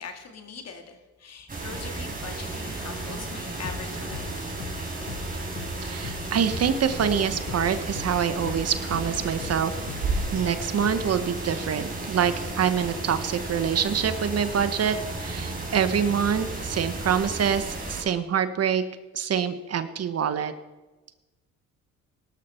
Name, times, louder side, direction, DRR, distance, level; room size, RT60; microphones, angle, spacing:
voice 1, 0.0-4.5, left 5 dB, 55° left, 5 dB, 2.4 m, -41 dB
sound 1, 1.5-18.0, right 2 dB, 30° right, 4.6 m, -34 dB
sound 2, 3.6-11.3, left 9 dB, 80° left, 1.2 m, -41 dB
voice 2, 5.8-9.7 10.3-18.8 19.1-20.5, right 7 dB, 55° right, 11 dB, 1.2 m, -25 dB
sound 3, 6.9-12.5, right 3 dB, 75° right, 3.6 m, -36 dB
17.5 x 12.5 x 4.5 m, 1.1 s
cardioid pair, 90°, 30 cm